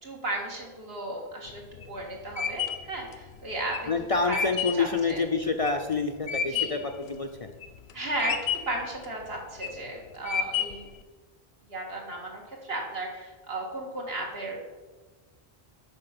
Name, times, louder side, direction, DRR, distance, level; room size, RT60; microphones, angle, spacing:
voice 1, 0.0-1.6 1.9-3.9 4.3-4.4 4.7-5.2 6.5-6.8 7.9-10.9 11.7-14.7, right 2 dB, 75° right, -1 dB, 2.1 m, -35 dB
sound 1, 1.5-6.9 7.4-7.9 8.2-8.9 9.4-9.8 10.3-11.0, left 7 dB, 85° left, 0.9 m, -31 dB
voice 2, 3.9-7.5, left 4 dB, 45° left, 5 dB, 0.5 m, -27 dB
8.7 x 5.7 x 5.9 m, 1.3 s
omnidirectional pair, 1.0 m